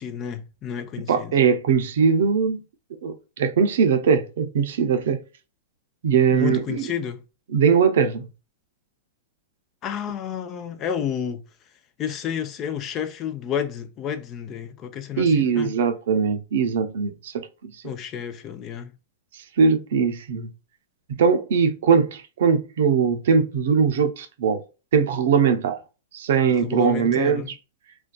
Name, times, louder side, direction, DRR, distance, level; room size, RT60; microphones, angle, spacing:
voice 1, 0.0-1.3 6.3-7.2 9.8-11.4 12.0-15.7 17.8-18.9 26.6-27.5, left 8 dB, 35° left, 0.4 m, -30 dB
voice 2, 1.1-2.6 3.0-5.2 6.0-6.8 7.5-8.3 15.2-17.7 19.6-20.5 21.2-24.6 24.9-25.8 26.1-27.4, right 6 dB, 70° right, 0.5 m, -20 dB
2.5 x 2.2 x 2.2 m
hypercardioid pair, 115°, 0 cm